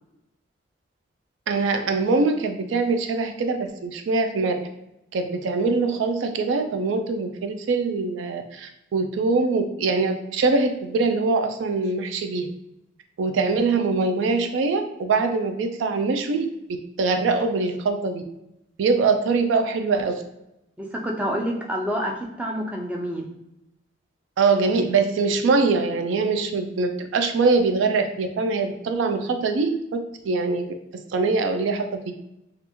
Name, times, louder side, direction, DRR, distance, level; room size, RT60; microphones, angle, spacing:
voice 1, 1.5-4.7 5.1-12.5 13.2-16.5 17.0-18.2 18.8-20.2 24.4-30.7 31.1-32.1, right 4 dB, 80° right, 6 dB, 0.3 m, -23 dB
voice 2, 20.8-23.3, equal, 5° right, 0 dB, 0.4 m, -28 dB
3.3 x 2.4 x 2.9 m, 0.87 s
head